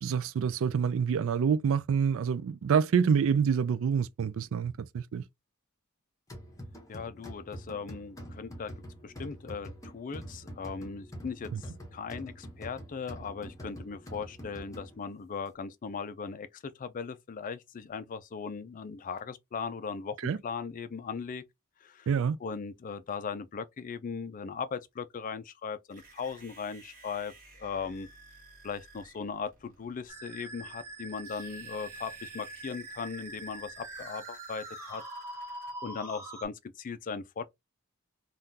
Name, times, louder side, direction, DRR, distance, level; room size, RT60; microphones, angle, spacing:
voice 1, 0.0-5.2 11.5-11.6 20.2-20.4 22.1-22.4, right 6 dB, 65° right, 0.3 m, -27 dB
sound 1, 6.3-15.2, equal, 15° left, 0.8 m, -45 dB
voice 2, 6.9-8.7 9.0-21.4 21.8-22.1 22.4-27.3 27.6-28.1 28.6-35.0 35.5-37.5, left 5 dB, 40° left, 0.4 m, -38 dB
sound 2, 25.9-35.7, right 3 dB, 40° right, 1.8 m, -55 dB
Musical instrument, 30.1-36.4, right 2 dB, 10° right, 1.0 m, -44 dB
3.6 x 2.3 x 2.7 m
head